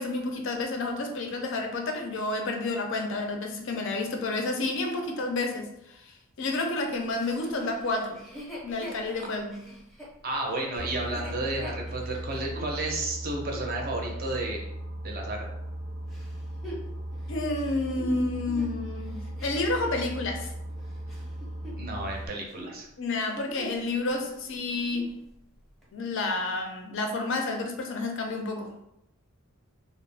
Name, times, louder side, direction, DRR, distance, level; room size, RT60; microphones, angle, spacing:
voice 1, 0.0-8.2 8.6-9.6 17.3-20.5 23.0-25.2 25.9-28.7, left 2 dB, 55° left, 3 dB, 0.4 m, -30 dB
Chuckle chortle, 7.2-12.8 13.3-13.4 16.1-20.1 20.7-22.2 22.4-22.8 23.2-23.9 24.2-24.3 24.7-25.2 25.8-25.9, equal, ahead, 0.6 m, -43 dB
voice 2, 10.2-14.6 15.0-15.5 21.8-22.9, right 2 dB, 40° right, 0 dB, 0.5 m, -32 dB
Boat Water vehicle, 10.8-22.3, right 1 dB, 90° right, 0.6 m, -37 dB
2.4 x 2.0 x 3.2 m, 0.81 s
head